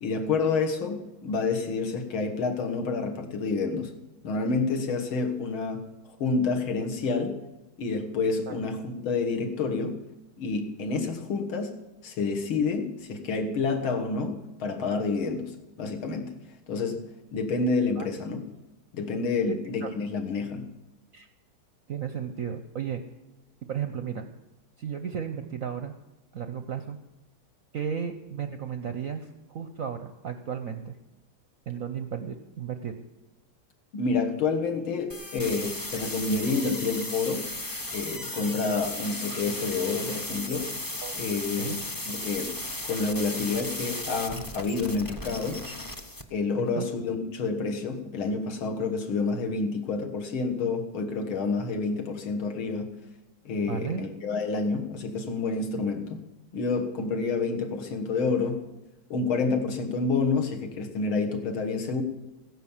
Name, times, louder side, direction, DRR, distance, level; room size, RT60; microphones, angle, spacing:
voice 1, 0.0-3.9 4.2-5.8 6.2-7.4 7.8-10.0 10.4-15.5 15.8-16.4 16.7-17.0 17.3-18.4 18.9-20.7 33.9-37.5 37.9-40.7 41.1-42.5 42.8-45.6 46.3-52.9 53.5-56.2 56.5-58.6 59.1-62.0, left 4 dB, 75° left, 4 dB, 2.3 m, -28 dB
voice 2, 19.5-19.9 21.1-21.3 21.9-23.0 23.7-24.3 24.8-25.9 26.3-27.0 27.7-31.0 31.7-32.9 41.0-41.1 41.6-41.8 46.7-46.9 53.7-54.1, right 7 dB, 65° right, 8 dB, 0.8 m, -34 dB
sound 1, 35.1-46.2, left 1 dB, 25° left, 0.4 m, -35 dB
15.0 x 10.5 x 7.2 m, 1.0 s
omnidirectional pair, 2.3 m